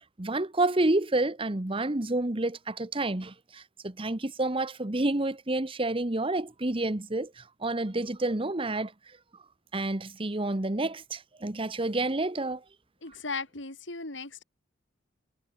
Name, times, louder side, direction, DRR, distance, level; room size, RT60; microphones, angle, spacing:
voice 1, 0.2-8.9 9.7-12.6, right 2 dB, 30° right, 1.1 m, -29 dB
voice 2, 13.0-14.4, left 4 dB, 70° left, 4.4 m, -37 dB
head